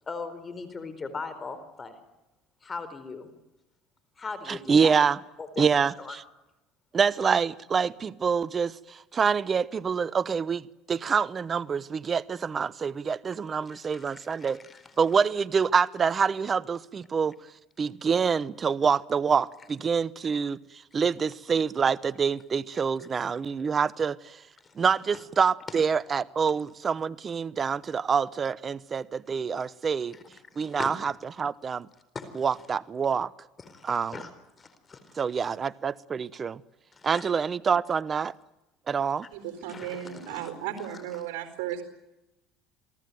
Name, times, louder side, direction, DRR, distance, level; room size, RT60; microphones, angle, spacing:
voice 1, 0.1-2.0 2.6-3.3 4.2-4.9 5.4-6.2 13.7-14.9 24.6-24.7 25.1-25.2 30.1-30.2 30.6-30.9 32.1-32.4 33.6-34.3 34.6-35.6 36.9-37.3 39.7-40.5 40.9-41.0, left 4 dB, 25° left, 4.3 m, -40 dB
voice 2, 4.5-5.2 5.6-6.2 6.9-14.6 15.0-17.3 17.8-20.6 20.9-24.4 24.8-30.2 30.6-31.9 32.3-33.3 33.8-34.1 35.2-36.6 37.0-38.3 38.9-39.3, right 6 dB, 30° right, 0.9 m, -26 dB
voice 3, 39.3-41.8, right 11 dB, 80° right, 4.4 m, -35 dB
28.5 x 19.0 x 9.3 m
supercardioid pair, 100°, 0 cm